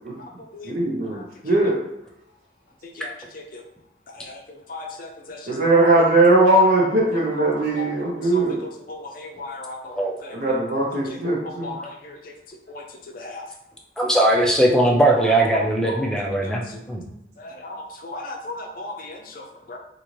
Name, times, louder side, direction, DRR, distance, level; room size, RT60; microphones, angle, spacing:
voice 1, 0.7-1.1 1.4-1.8 5.5-8.6 10.3-11.7, right 2 dB, 55° right, -6 dB, 0.7 m, -19 dB
voice 2, 2.8-3.6 4.1-5.9 6.3-6.4 7.3-7.5 7.7-7.9 8.2-10.4 11.0-11.2 11.4-13.5 15.1-16.0 16.4-16.8 17.4-19.8, left 2 dB, 50° left, 2 dB, 0.6 m, -37 dB
voice 3, 14.0-17.0, right 1 dB, 5° left, -1 dB, 0.5 m, -19 dB
3.8 x 2.5 x 3.1 m, 0.84 s
head